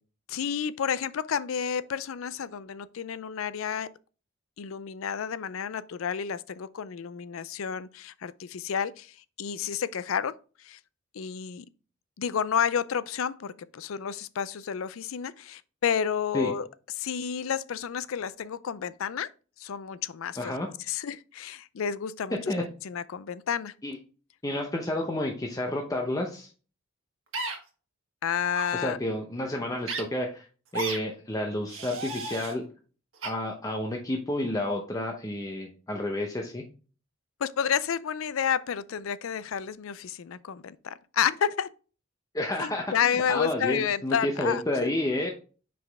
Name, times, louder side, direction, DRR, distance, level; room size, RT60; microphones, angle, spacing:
voice 1, 0.3-3.9 4.6-10.3 10.6-10.8 11.1-11.7 12.2-16.7 17.0-19.3 19.6-20.6 20.9-22.4 22.8-23.7 28.2-29.0 37.4-41.7 42.6-44.9, left 7 dB, 75° left, 0.4 m, -30 dB
voice 2, 20.4-20.7 22.5-22.6 23.8-24.0 24.4-26.5 28.7-30.5 30.7-32.7 33.2-36.6 42.3-45.3, left 1 dB, 15° left, 0.7 m, -30 dB
sound 1, 27.3-27.6 28.5-28.7 29.9-30.0 30.7-31.0 31.7-32.5 33.2-33.3, right 3 dB, 65° right, 1.5 m, -33 dB
5.8 x 5.0 x 3.4 m
head